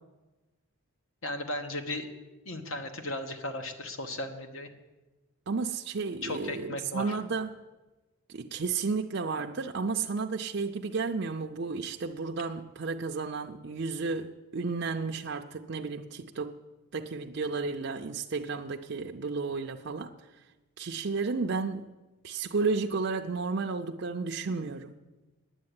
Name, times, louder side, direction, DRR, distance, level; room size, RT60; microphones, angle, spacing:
voice 1, 1.2-2.1 2.4-4.7 6.2-7.1, left 1 dB, 65° left, 7 dB, 1.3 m, -36 dB
voice 2, 5.5-7.6 8.3-16.5 16.9-20.1 20.8-21.9 22.2-25.0, right 4 dB, 50° right, 2 dB, 0.5 m, -32 dB
9.6 x 8.2 x 9.5 m, 1.1 s
head